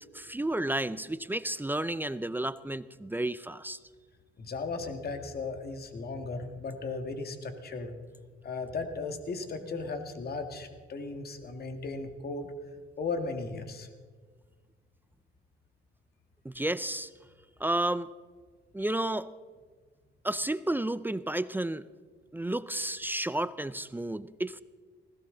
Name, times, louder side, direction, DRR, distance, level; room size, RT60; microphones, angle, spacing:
voice 1, 0.1-3.8 16.4-17.1 17.6-18.1 18.7-19.3 20.2-21.9 22.3-24.6, right 1 dB, 10° right, 15 dB, 0.5 m, -31 dB
voice 2, 4.4-7.9 8.4-12.5 13.0-13.9, left 3 dB, 50° left, 6 dB, 1.9 m, -36 dB
20.0 x 17.0 x 3.9 m, 1.5 s
cardioid pair, 90°, 20 cm